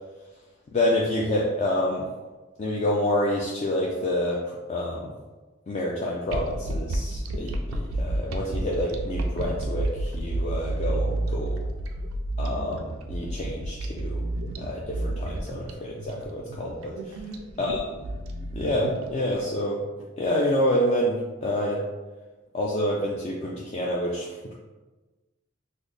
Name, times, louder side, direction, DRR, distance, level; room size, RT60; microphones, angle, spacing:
voice 1, 0.7-2.0 2.6-5.1 5.7-11.6 12.4-14.2 14.6-17.2 17.6-17.8 18.5-19.8 20.2-21.8 22.5-24.5, left 1 dB, 35° left, -4 dB, 0.3 m, -28 dB
sound 1, 6.3-19.4, right 1 dB, 80° right, 0.4 m, -30 dB
3.9 x 2.0 x 3.2 m, 1.2 s
head